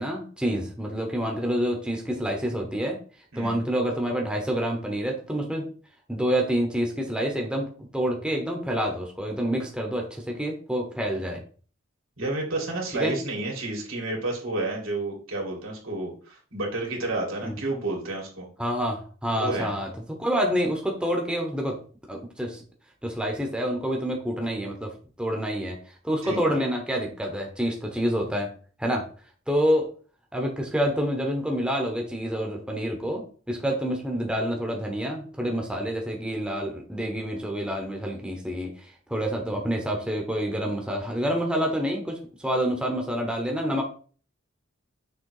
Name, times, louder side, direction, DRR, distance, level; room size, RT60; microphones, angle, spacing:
voice 1, 0.0-3.0 3.3-5.7 6.1-11.4 12.9-13.2 17.4-17.6 18.6-21.8 22.1-22.6 23.0-24.9 25.2-25.8 26.0-28.5 28.8-29.1 29.5-29.9 30.3-43.8, equal, 5° right, 1 dB, 1.0 m, -27 dB
voice 2, 12.2-18.5 19.3-19.7 26.2-26.5, right 2 dB, 80° right, -1 dB, 2.4 m, -30 dB
6.5 x 3.2 x 4.8 m, 0.41 s
head